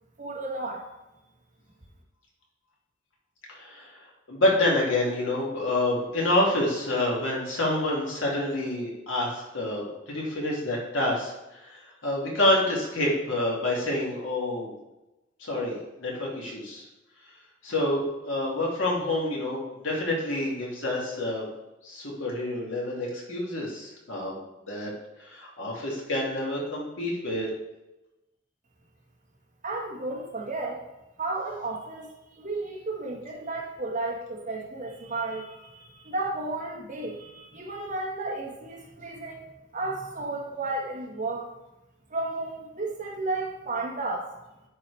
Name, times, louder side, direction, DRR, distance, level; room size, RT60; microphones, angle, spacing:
voice 1, 0.2-0.9 29.6-30.8 31.2-39.5 39.7-41.5 42.1-44.3, right 2 dB, 40° right, -1 dB, 1.5 m, -33 dB
voice 2, 3.5-4.0 4.3-11.3 11.6-14.7 15.4-16.8 17.6-21.5 21.8-24.4 24.7-24.9 25.2-27.5, left 1 dB, 85° left, -3 dB, 2.4 m, -28 dB
10.0 x 4.4 x 3.3 m, 0.96 s
head